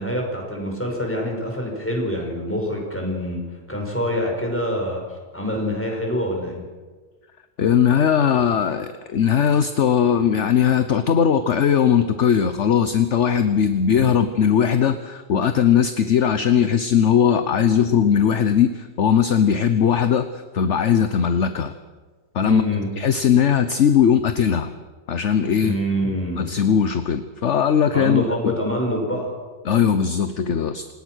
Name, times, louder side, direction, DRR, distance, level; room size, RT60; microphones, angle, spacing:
voice 1, 0.0-3.4 3.7-5.0 5.3-6.6 13.9-14.2 22.4-22.9 25.6-26.6 27.9-29.3, equal, 5° left, 0 dB, 6.1 m, -25 dB
voice 2, 7.6-21.7 22.3-22.6 23.0-24.7 25.1-25.8 26.4-28.5 29.6-30.8, left 8 dB, 50° left, 10 dB, 1.0 m, -19 dB
27.5 x 18.0 x 6.4 m, 1.4 s
omnidirectional pair, 1.9 m